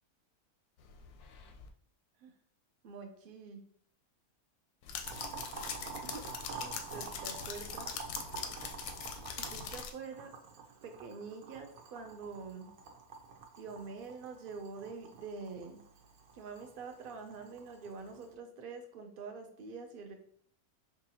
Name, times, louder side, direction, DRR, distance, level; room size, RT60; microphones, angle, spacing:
sound 1, 0.8-1.7 4.8-9.9, left 6 dB, 90° left, 1.1 m, -42 dB
voice 1, 2.8-3.6 6.1-6.3 6.6-7.9 9.4-10.3 10.8-12.7 13.6-15.8 16.3-20.1, right 4 dB, 55° right, 5 dB, 0.6 m, -46 dB
Boiling, 5.0-18.3, right 5 dB, 80° right, 1.2 m, -48 dB
4.8 x 2.4 x 2.8 m, 0.65 s
omnidirectional pair, 1.6 m